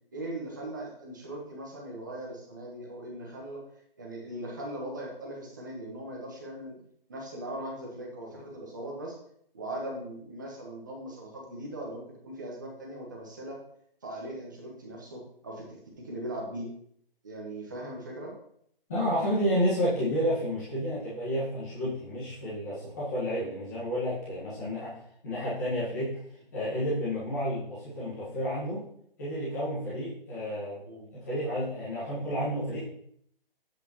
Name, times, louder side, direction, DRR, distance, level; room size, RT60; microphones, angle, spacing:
voice 1, 0.1-3.6 4.0-6.8 7.1-9.2 9.5-13.6 14.0-16.7 17.2-18.3 30.8-31.1 32.2-32.3, right 1 dB, 20° right, -2 dB, 1.1 m, -39 dB
voice 2, 18.9-24.9 25.2-26.2 26.5-28.9 29.2-30.8 31.1-32.8, equal, 20° left, -10 dB, 1.6 m, -30 dB
8.2 x 6.8 x 3.0 m, 0.68 s
hypercardioid pair, 175°, 29 cm